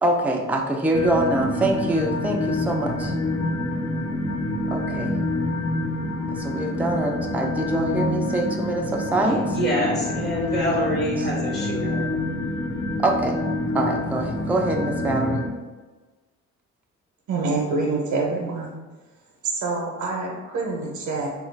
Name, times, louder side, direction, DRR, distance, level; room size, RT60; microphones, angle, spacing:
voice 1, 0.0-3.1 4.7-5.2 6.3-9.6 13.0-13.4 13.7-15.5, right 1 dB, 5° right, 1 dB, 0.3 m, -24 dB
sound 1, 0.9-15.5, left 1 dB, 65° left, 0.7 m, -27 dB
voice 2, 9.5-12.1, left 1 dB, 35° left, -4 dB, 1.1 m, -25 dB
voice 3, 17.3-18.7 19.4-21.3, right 3 dB, 70° right, -1 dB, 0.7 m, -26 dB
3.0 x 2.4 x 3.2 m, 1.3 s
cardioid pair, 90°, 30 cm